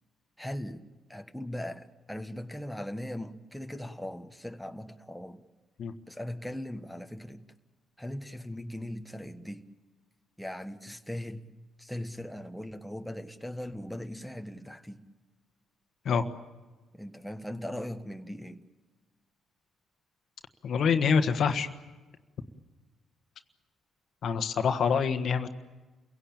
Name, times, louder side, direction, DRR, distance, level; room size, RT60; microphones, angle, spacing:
voice 1, 0.4-5.4 6.1-7.4 8.0-9.6 10.4-11.4 11.8-15.0 16.9-18.6, left 1 dB, ahead, 1.4 m, -39 dB
voice 2, 20.6-21.7 24.2-25.5, left 6 dB, 60° left, 1.5 m, -26 dB
28.5 x 17.0 x 8.8 m
cardioid pair, 90°, 0 cm